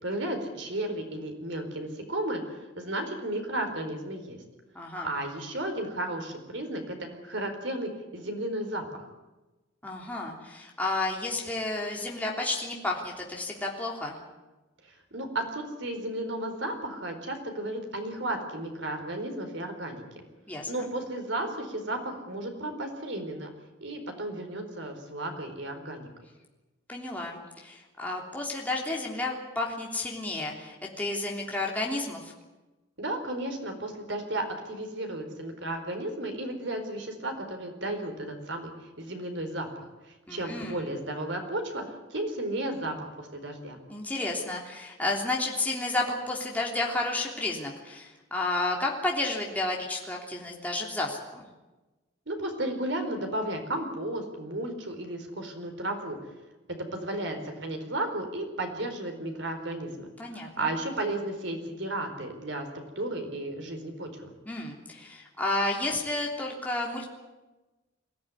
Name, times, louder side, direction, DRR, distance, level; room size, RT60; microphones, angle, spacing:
voice 1, 0.0-4.4 5.0-9.1 14.8-20.2 20.6-23.5 23.8-26.1 33.0-43.8 52.3-56.2 56.9-64.3, right 1 dB, 70° right, 5 dB, 4.4 m, -34 dB
voice 2, 4.7-5.1 9.8-14.2 20.5-20.7 26.9-32.3 40.3-40.8 43.9-51.4 60.2-60.7 64.4-67.1, left 2 dB, 10° left, -2 dB, 3.3 m, -31 dB
23.5 x 16.5 x 10.0 m, 1.1 s
head